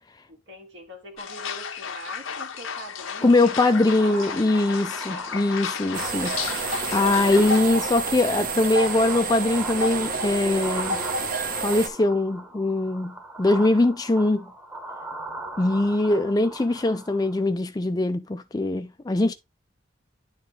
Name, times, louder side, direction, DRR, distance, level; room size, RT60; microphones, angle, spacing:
voice 1, 0.3-4.5 15.5-16.5, right 1 dB, 70° right, 1.9 m, -43 dB
sound 1, 1.2-7.6, left 7 dB, 90° left, 0.9 m, -34 dB
sound 2, 2.1-17.5, right 1 dB, 10° right, 1.1 m, -39 dB
voice 2, 3.2-11.0 11.5-14.5 15.6-19.3, left 2 dB, 20° left, 0.4 m, -22 dB
sound 3, 5.9-11.9, right 3 dB, 45° right, 1.0 m, -29 dB
10.5 x 4.0 x 3.2 m
head